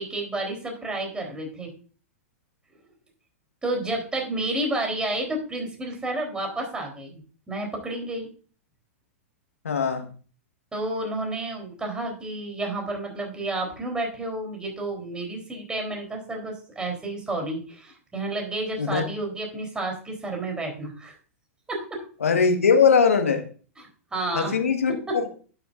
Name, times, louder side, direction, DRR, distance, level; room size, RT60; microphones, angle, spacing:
voice 1, 0.0-1.7 3.6-7.2 7.5-8.3 10.7-21.2 21.7-22.0 23.8-24.5 25.1-25.2, right 2 dB, 10° right, 1 dB, 3.6 m, -30 dB
voice 2, 9.6-10.1 18.8-19.0 22.2-23.5 24.3-25.3, left 6 dB, 80° left, 6 dB, 1.5 m, -21 dB
11.5 x 7.5 x 2.6 m, 0.39 s
hypercardioid pair, 105°, 7 cm